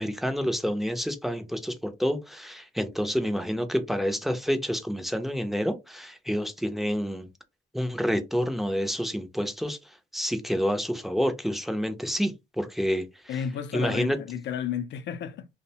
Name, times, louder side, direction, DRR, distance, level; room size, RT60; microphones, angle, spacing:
voice 1, 0.0-7.3 7.7-9.8 10.1-13.0 13.7-14.2, equal, ahead, 0.5 m, -28 dB
voice 2, 13.3-15.5, left 8 dB, 65° left, 0.5 m, -32 dB
2.6 x 2.1 x 2.7 m
cardioid pair, 90°, 20 cm